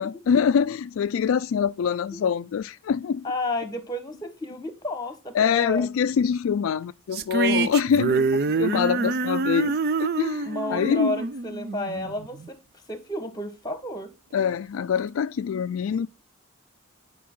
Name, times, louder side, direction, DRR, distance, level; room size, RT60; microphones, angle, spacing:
voice 1, 0.0-3.3 5.3-11.1 14.3-16.1, left 7 dB, 75° left, 0.3 m, -25 dB
voice 2, 3.2-5.9 8.9-9.2 10.4-12.6 12.9-14.1, left 1 dB, 20° left, 1.2 m, -32 dB
sound 1, 7.1-12.5, right 4 dB, 45° right, 0.4 m, -26 dB
8.5 x 5.2 x 3.7 m
head